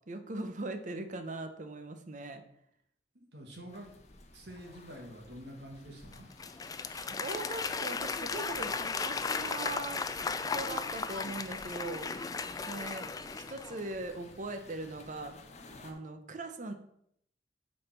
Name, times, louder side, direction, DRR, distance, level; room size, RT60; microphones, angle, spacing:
voice 1, 0.1-2.4 6.9-10.0 10.4-12.1 12.4-13.1 13.3-15.4 15.8-16.7, right 2 dB, 45° right, 7 dB, 0.8 m, -40 dB
voice 2, 3.2-3.9 4.3-6.3, equal, 70° right, 1 dB, 1.9 m, -47 dB
sound 1, 3.7-15.9, left 2 dB, 40° left, 0.9 m, -54 dB
Applause / Crowd, 6.1-13.9, left 4 dB, 20° left, 0.3 m, -36 dB
6.6 x 4.2 x 5.8 m, 0.71 s
head